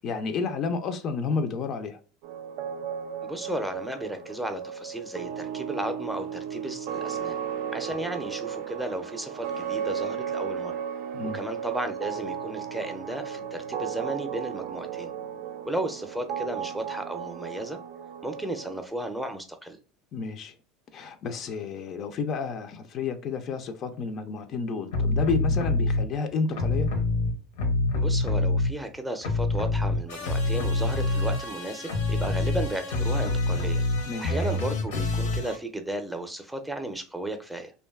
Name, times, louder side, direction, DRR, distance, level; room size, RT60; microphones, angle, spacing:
voice 1, 0.0-2.0 11.1-11.4 20.1-20.5 20.9-26.9 34.1-34.3, left 4 dB, 50° left, 0.4 m, -30 dB
sound 1, 2.2-18.9, right 8 dB, 65° right, 0.3 m, -35 dB
voice 2, 3.2-7.4 7.7-10.8 11.3-15.1 15.6-17.8 18.2-19.8 28.0-33.8 34.2-37.7, right 1 dB, 5° right, 0.5 m, -34 dB
sound 2, 24.9-26.0 26.5-28.9 29.2-35.6, left 2 dB, 80° left, 0.7 m, -26 dB
2.5 x 2.2 x 2.2 m
hypercardioid pair, 90°, 0 cm